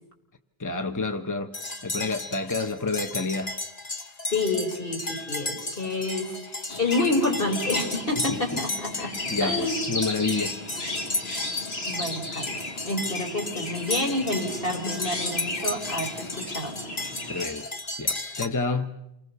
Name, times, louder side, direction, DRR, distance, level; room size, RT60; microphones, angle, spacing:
voice 1, 0.6-1.5 1.8-3.5 8.3-8.6 9.0-10.6 17.3-17.7 18.0-18.9, left 3 dB, 20° left, 1.0 m, -29 dB
sound 1, 1.5-18.5, left 2 dB, 40° left, 1.6 m, -34 dB
voice 2, 4.3-9.1 9.4-9.9 11.8-16.8, left 2 dB, 65° left, 4.5 m, -28 dB
Chirp tweet, 6.7-17.5, left 2 dB, 85° left, 2.7 m, -35 dB
28.5 x 21.0 x 6.9 m
omnidirectional pair, 1.0 m